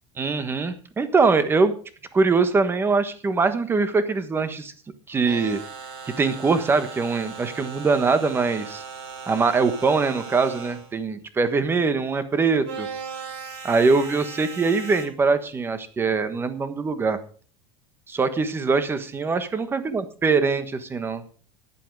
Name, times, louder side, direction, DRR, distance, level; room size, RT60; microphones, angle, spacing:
voice 1, 0.2-1.7 2.1-4.7 5.1-5.6 6.1-8.8 9.3-12.9 13.6-17.2 18.1-21.2, right 4 dB, 15° right, 11 dB, 1.3 m, -22 dB
sound 1, 5.2-10.9 12.6-15.1, right 6 dB, 60° right, 4.7 m, -38 dB
14.0 x 10.5 x 4.7 m, 0.41 s
supercardioid pair, 155°, 15 cm